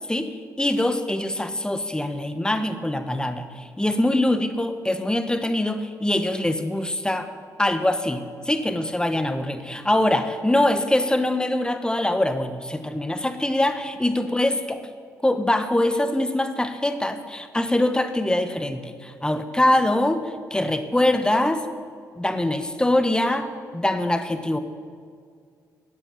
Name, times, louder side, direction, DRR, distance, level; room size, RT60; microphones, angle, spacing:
voice 1, 0.1-7.3 7.6-14.8 15.2-20.2 20.5-21.6 22.2-24.6, left 1 dB, 10° left, 9 dB, 1.2 m, -23 dB
13.0 x 9.8 x 7.1 m, 2.2 s
figure-of-eight pair, 40°, 9 cm